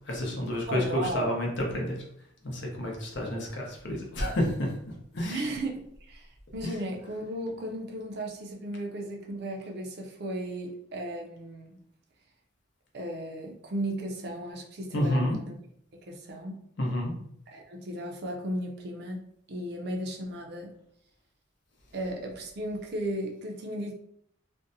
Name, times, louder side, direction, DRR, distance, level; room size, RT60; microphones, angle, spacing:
voice 1, 0.1-2.0 2.4-4.7 5.1-5.4 14.9-15.4 16.8-17.1, left 1 dB, 60° left, 0 dB, 0.7 m, -29 dB
voice 2, 0.7-1.3 5.3-11.8 12.9-15.5 15.9-16.6 17.5-19.2 19.5-20.7 21.9-23.9, right 1 dB, 55° right, 1 dB, 0.5 m, -35 dB
2.6 x 2.1 x 2.6 m, 0.68 s
head